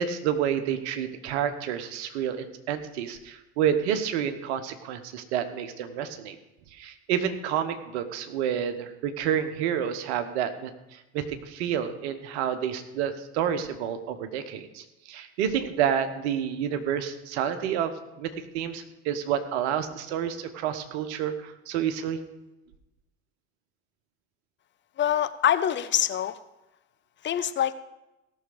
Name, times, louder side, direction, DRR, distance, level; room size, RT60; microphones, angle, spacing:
voice 1, 0.0-6.4 6.7-22.2, right 9 dB, 65° right, 9 dB, 1.2 m, -29 dB
voice 2, 25.0-26.4 27.2-27.7, left 10 dB, 30° left, 12 dB, 0.6 m, -25 dB
17.0 x 6.5 x 5.0 m, 0.96 s
figure-of-eight pair, 65°, 35 cm